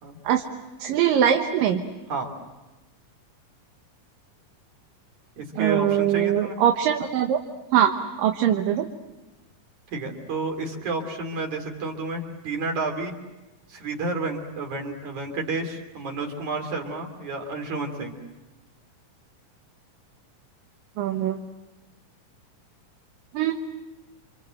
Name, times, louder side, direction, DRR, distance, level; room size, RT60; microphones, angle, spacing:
voice 1, 0.8-1.8 5.6-7.4 7.7-7.9 8.2-8.9 21.0-21.4 23.3-23.5, right 10 dB, 80° right, 4 dB, 2.9 m, -22 dB
voice 2, 5.4-6.6 9.9-13.1 13.7-18.2, right 3 dB, 60° right, 3 dB, 4.5 m, -30 dB
29.0 x 26.5 x 7.8 m, 1.1 s
omnidirectional pair, 3.9 m